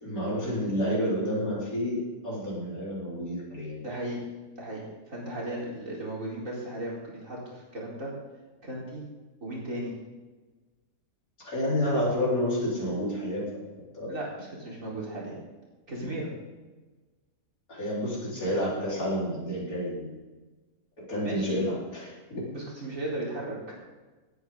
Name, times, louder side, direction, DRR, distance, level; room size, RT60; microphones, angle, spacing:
voice 1, 0.0-3.9 11.4-13.5 13.9-14.1 17.7-20.1 21.1-22.4, equal, 70° left, -7 dB, 5.0 m, -29 dB
voice 2, 3.8-4.2 4.6-8.1 8.6-9.0 9.4-9.9 14.1-15.4 15.9-16.3 21.2-21.6 22.5-23.7, right 1 dB, 60° right, -5 dB, 4.6 m, -36 dB
18.5 x 9.7 x 3.9 m, 1.3 s
omnidirectional pair, 1.6 m